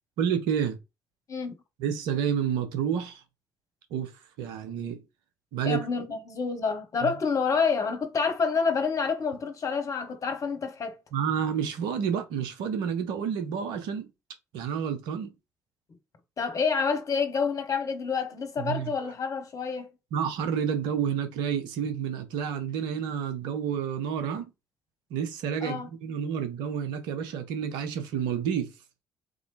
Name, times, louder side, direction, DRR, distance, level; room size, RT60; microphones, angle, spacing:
voice 1, 0.2-0.8 1.8-3.2 3.9-4.1 4.4-5.0 5.5-5.8 7.0-7.1 11.1-14.1 14.5-15.3 18.6-18.9 20.1-24.5 25.1-28.7, right 8 dB, 70° right, 0.8 m, -29 dB
voice 2, 5.6-11.0 16.4-19.9 25.6-25.9, left 5 dB, 45° left, 1.1 m, -28 dB
3.8 x 3.0 x 3.3 m
hypercardioid pair, 45°, 8 cm